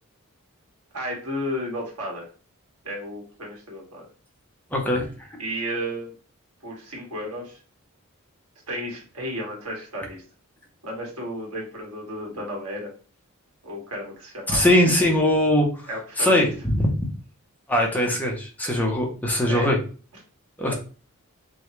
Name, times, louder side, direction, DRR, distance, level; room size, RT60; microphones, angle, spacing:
voice 1, 0.9-2.2 2.8-4.1 5.4-6.1 6.6-7.6 8.7-10.2 10.8-12.9 13.6-14.7 15.9-16.5 19.5-19.7, equal, 85° right, -1 dB, 1.6 m, -33 dB
voice 2, 4.7-5.4 14.5-15.7 16.2-17.0 17.7-19.8 20.6-20.7, left 1 dB, 10° left, -1 dB, 0.8 m, -21 dB
5.4 x 2.3 x 3.1 m, 0.37 s
head